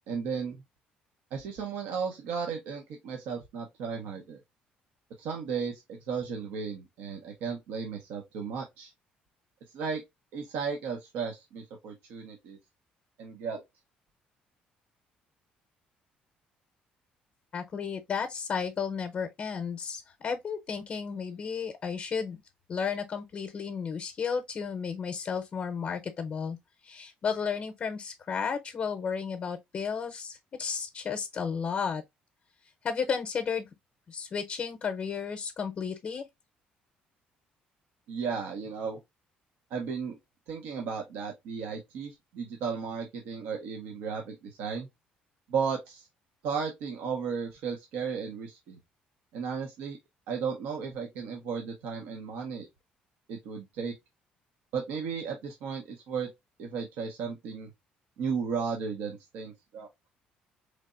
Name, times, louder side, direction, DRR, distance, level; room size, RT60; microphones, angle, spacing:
voice 1, 0.1-0.6 1.3-4.4 5.2-8.9 9.7-10.0 10.3-12.6 13.2-13.6 38.1-39.0 39.7-40.2 40.5-44.9 45.5-46.1 46.4-48.8 49.3-50.0 50.3-52.7 53.3-53.9 54.7-56.3 56.6-57.7 58.2-59.9, right 6 dB, 85° right, 0.8 m, -34 dB
voice 2, 17.5-22.4 22.7-26.6 26.8-32.0 32.8-33.7 34.1-36.3, left 6 dB, 45° left, 0.6 m, -33 dB
3.9 x 3.3 x 2.4 m
cardioid pair, 110°, 3 cm